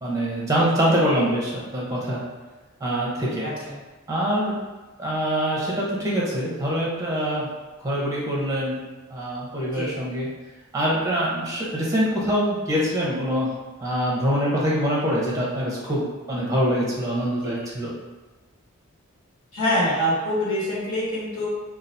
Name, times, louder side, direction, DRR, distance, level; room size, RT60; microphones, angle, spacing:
voice 1, 0.0-2.2 2.8-3.5 4.1-4.6 5.0-7.5 7.8-8.8 9.1-10.3 10.7-13.5 13.8-17.9, equal, 15° right, -5 dB, 0.9 m, -24 dB
voice 2, 3.4-3.7 9.7-9.9 17.4-17.5 19.5-21.5, equal, 70° left, -7 dB, 1.4 m, -25 dB
4.8 x 2.4 x 2.7 m, 1.2 s
head